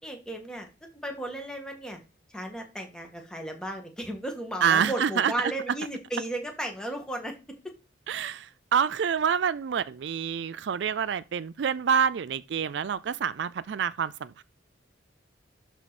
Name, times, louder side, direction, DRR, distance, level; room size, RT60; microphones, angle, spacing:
voice 1, 0.0-0.7 0.9-2.0 2.3-7.3 7.6-7.7, right 1 dB, 5° left, 1.8 m, -35 dB
voice 2, 4.6-5.3 8.1-14.4, right 7 dB, 65° right, 0.4 m, -27 dB
12.0 x 4.6 x 4.2 m
head